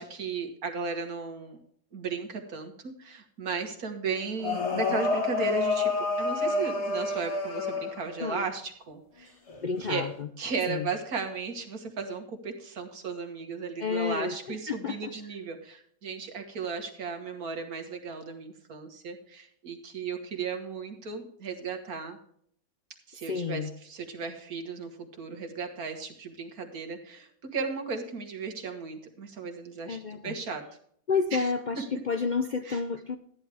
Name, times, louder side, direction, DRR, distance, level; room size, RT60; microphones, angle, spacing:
voice 1, 0.0-1.6 1.9-9.3 9.8-10.1 10.4-22.2 23.1-30.6 31.3-31.5 32.7-32.8, right 5 dB, 80° right, 4 dB, 2.1 m, -35 dB
sound 1, 4.4-8.2 9.5-9.9, left 3 dB, 50° left, 2.1 m, -28 dB
voice 2, 9.6-10.3 10.7-10.9 13.8-15.1 23.2-23.7 29.9-30.4 31.1-33.2, left 5 dB, 65° left, 7 dB, 0.4 m, -30 dB
13.5 x 10.0 x 3.5 m, 0.63 s
omnidirectional pair, 1.5 m